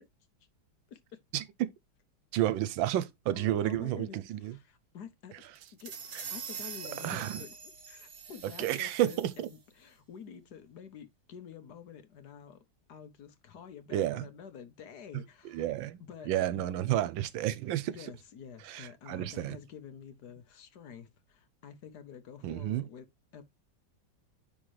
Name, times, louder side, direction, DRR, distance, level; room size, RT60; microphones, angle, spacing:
voice 1, 0.9-1.2 3.3-5.5 5.8-6.0 6.3-7.5 7.9-12.6 12.9-15.7 16.0-16.7 17.9-23.1 23.3-23.4, left 7 dB, 60° left, 1.4 m, -49 dB
voice 2, 2.3-4.6 7.0-7.4 8.6-9.5 13.9-14.2 15.5-16.0 16.3-17.9 18.6-19.6 22.4-22.9, right 13 dB, 85° right, 1.4 m, -31 dB
sound 1, 5.6-9.6, right 6 dB, 45° right, 1.6 m, -44 dB
9.9 x 3.8 x 3.2 m
omnidirectional pair, 2.1 m